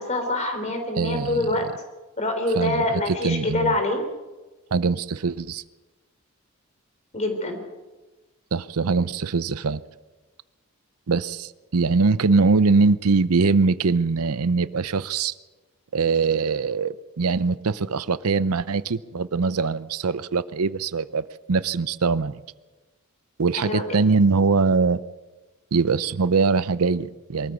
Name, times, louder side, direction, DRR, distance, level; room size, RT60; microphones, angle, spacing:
voice 1, 0.0-1.7 2.2-4.0 7.1-7.6 23.6-23.8, left 2 dB, 30° left, 5 dB, 3.6 m, -25 dB
voice 2, 1.0-1.5 2.5-3.8 4.7-5.6 8.5-9.8 11.1-15.3 15.9-22.4 23.4-25.0 25.7-27.5, right 4 dB, 80° right, 16 dB, 0.6 m, -22 dB
23.0 x 14.0 x 8.1 m, 1.2 s
head